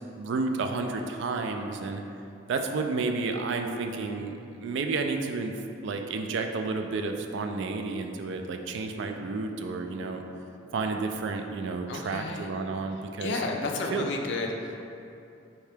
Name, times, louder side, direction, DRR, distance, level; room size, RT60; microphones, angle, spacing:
voice 1, 0.2-2.0 2.5-5.5 5.8-10.2 10.7-13.4 13.9-14.1, right 3 dB, 65° right, 4 dB, 0.3 m, -31 dB
voice 2, 11.9-12.5 13.2-14.8, left 3 dB, 65° left, 2 dB, 0.4 m, -31 dB
4.4 x 2.8 x 3.4 m, 2.7 s
head